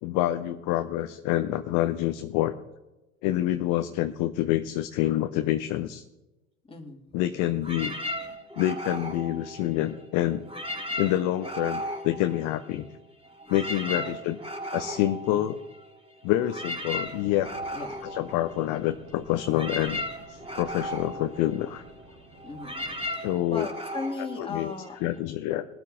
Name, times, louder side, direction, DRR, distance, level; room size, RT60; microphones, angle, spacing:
voice 1, 0.0-2.5 3.2-6.0 7.1-7.9 8.6-10.5 11.0-12.9 13.5-14.4 14.7-15.6 16.2-17.5 18.0-20.0 20.3-21.8 23.2-23.7 24.4-24.7 25.0-25.7, left 13 dB, 50° left, 8 dB, 0.8 m, -27 dB
voice 2, 6.6-7.0 13.9-14.2 15.3-15.4 17.7-18.0 22.4-22.9 23.1-25.0, left 3 dB, 15° left, 2 dB, 2.4 m, -37 dB
sound 1, 7.6-10.0 10.4-12.9 13.2-25.2, equal, 15° right, 3.3 m, -36 dB
sound 2, 17.0-23.1, right 1 dB, 50° right, 4.0 m, -52 dB
20.5 x 12.5 x 2.7 m, 1.0 s
figure-of-eight pair, 70°, 39 cm